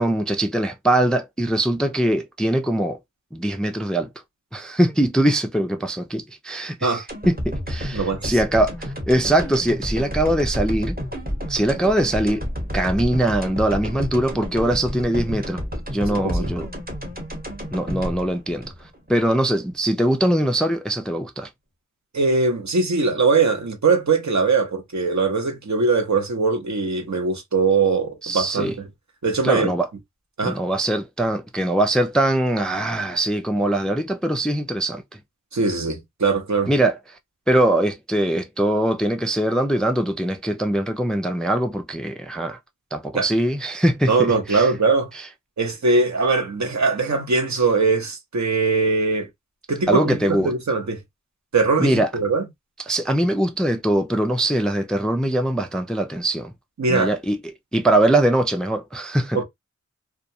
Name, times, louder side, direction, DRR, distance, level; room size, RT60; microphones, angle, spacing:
voice 1, 0.0-3.0 3.3-4.1 4.5-11.0 11.5-12.4 12.7-15.6 15.9-16.7 17.7-18.7 19.1-21.5 28.2-28.7 29.4-29.9 30.4-35.0 36.7-37.0 37.5-42.6 42.9-44.7 49.9-50.5 51.8-52.1 52.9-56.5 56.9-57.4 57.7-59.4, right 1 dB, ahead, 0.3 m, -22 dB
sound 1, 7.1-19.3 19.7-19.8, equal, 30° right, 1.0 m, -30 dB
voice 2, 7.9-8.4 16.0-16.5 22.1-28.9 29.2-29.7 30.4-30.6 35.5-36.7 43.1-43.3 44.1-45.1 45.6-49.3 49.7-51.0 51.5-52.5 56.8-57.1 59.3-59.4, right 4 dB, 60° right, 0.8 m, -21 dB
2.3 x 2.2 x 2.6 m
wide cardioid pair, 45°, 31 cm